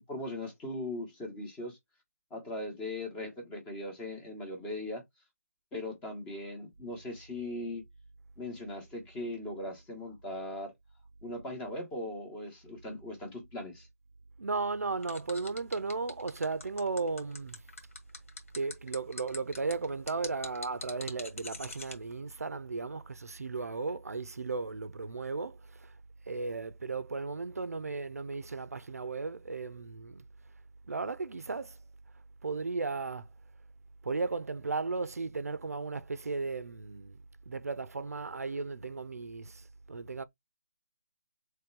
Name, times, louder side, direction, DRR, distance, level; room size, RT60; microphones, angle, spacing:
voice 1, 0.0-1.8 2.3-5.0 5.7-7.8 8.4-10.7 11.2-13.9, left 1 dB, 10° left, 1.0 m, -39 dB
voice 2, 14.4-17.6 18.5-26.0 26.3-30.2 30.8-31.8 32.1-33.3 34.0-40.2, right 4 dB, 80° right, 0.6 m, -35 dB
sound 1, 15.0-21.9, left 3 dB, 65° left, 1.6 m, -43 dB
3.6 x 3.3 x 4.4 m
figure-of-eight pair, 160°, 8 cm